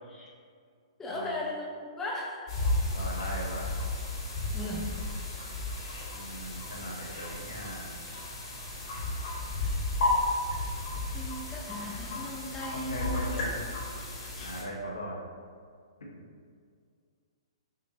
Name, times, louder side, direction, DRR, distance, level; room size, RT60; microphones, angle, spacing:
voice 1, 1.0-2.7 4.5-5.0 11.1-13.3 14.0-14.6, left 1 dB, 10° left, -3 dB, 0.5 m, -38 dB
sound 1, 2.5-14.6, left 2 dB, 50° left, 1.4 m, -33 dB
voice 2, 2.9-3.7 6.1-7.9 12.7-13.6 14.4-15.2, equal, 65° left, -3 dB, 1.0 m, -38 dB
6.4 x 2.5 x 2.7 m, 2.1 s
figure-of-eight pair, 115°, 3 cm